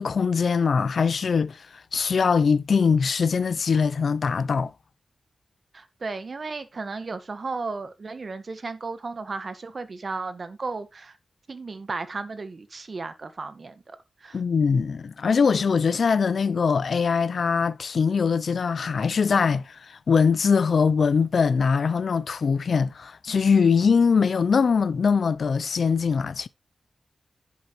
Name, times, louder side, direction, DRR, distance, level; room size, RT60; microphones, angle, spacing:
voice 1, 0.0-1.7 1.9-4.7 14.3-26.5, left 5 dB, 70° left, 0.5 m, -22 dB
voice 2, 5.7-11.2 11.5-14.4, right 3 dB, 50° right, 1.5 m, -34 dB
10.5 x 8.1 x 3.2 m
wide cardioid pair, 85°, 0 cm